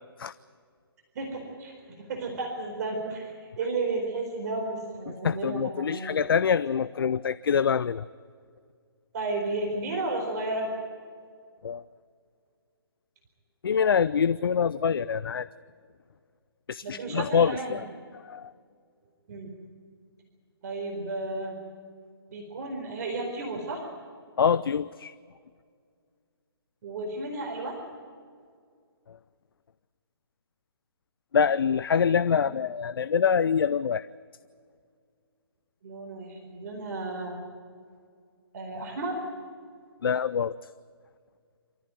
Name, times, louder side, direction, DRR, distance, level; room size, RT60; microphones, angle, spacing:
voice 1, 1.1-6.1 9.1-10.7 16.8-17.8 19.3-19.5 20.6-21.6 22.3-23.9 26.8-27.8 32.4-32.6 35.8-37.4 38.5-39.2, right 2 dB, 40° right, 1 dB, 4.4 m, -33 dB
voice 2, 5.2-8.0 11.6-11.8 13.6-15.5 16.7-17.8 18.2-18.5 24.4-25.1 31.3-34.1 40.0-40.6, left 7 dB, 65° left, 16 dB, 0.6 m, -25 dB
27.0 x 14.5 x 9.2 m, 2.1 s
figure-of-eight pair, 145°, 13 cm